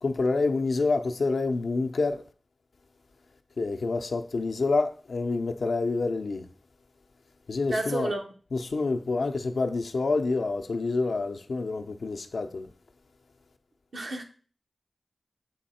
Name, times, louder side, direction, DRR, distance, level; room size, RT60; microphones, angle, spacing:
voice 1, 0.0-2.2 3.6-6.5 7.5-8.1 8.5-12.7, left 3 dB, 85° left, 0.6 m, -27 dB
voice 2, 7.7-8.3 13.9-14.2, right 2 dB, 85° right, 1.1 m, -31 dB
7.3 x 3.0 x 4.2 m
cardioid pair, 45°, 0 cm